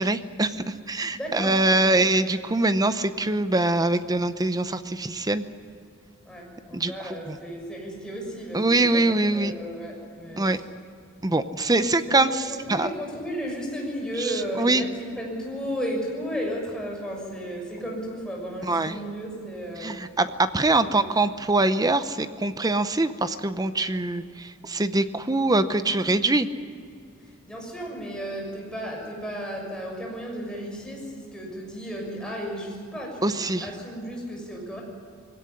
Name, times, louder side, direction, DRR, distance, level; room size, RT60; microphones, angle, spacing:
voice 1, 0.0-5.5 6.7-7.4 8.5-9.5 10.4-10.6 11.2-12.9 14.2-14.9 18.7-18.9 19.8-26.5 33.2-33.7, right 2 dB, 15° right, 11 dB, 0.7 m, -23 dB
voice 2, 1.1-2.0 6.2-10.6 11.7-20.1 20.8-21.1 27.3-34.8, equal, 5° left, -2 dB, 6.4 m, -34 dB
21.5 x 17.0 x 9.9 m, 2.4 s
head